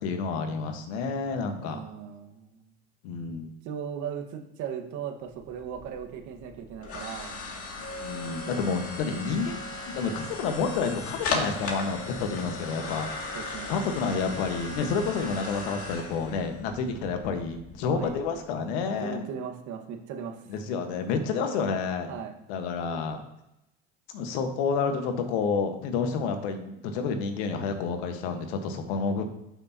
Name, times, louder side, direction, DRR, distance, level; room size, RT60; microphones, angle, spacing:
voice 1, 0.0-1.8 3.0-3.5 7.9-13.4 13.7-19.2 20.5-22.1 22.5-23.2 24.1-29.2, left 5 dB, 75° left, 6 dB, 1.4 m, -29 dB
voice 2, 1.6-2.6 3.6-7.4 11.5-11.7 13.3-13.8 17.9-18.2 18.9-20.4 22.1-22.3, right 8 dB, 60° right, 4 dB, 1.5 m, -38 dB
sound 1, 5.3-18.4, left 3 dB, 45° left, 2.4 m, -37 dB
11.5 x 6.1 x 2.8 m, 0.88 s
supercardioid pair, 85°, 32 cm